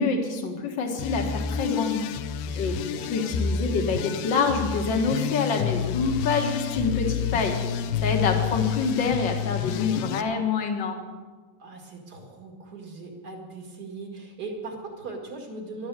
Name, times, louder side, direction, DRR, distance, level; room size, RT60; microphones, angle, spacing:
voice 1, 0.0-2.0 2.5-2.8 3.1-7.6 8.0-11.1, left 4 dB, 45° left, 3 dB, 1.5 m, -26 dB
sound 1, 1.0-10.2, left 8 dB, 80° left, 2.5 m, -29 dB
voice 2, 2.4-3.4 11.6-15.9, right 3 dB, 40° right, 1 dB, 1.6 m, -39 dB
12.0 x 12.0 x 8.3 m, 1.4 s
omnidirectional pair, 4.5 m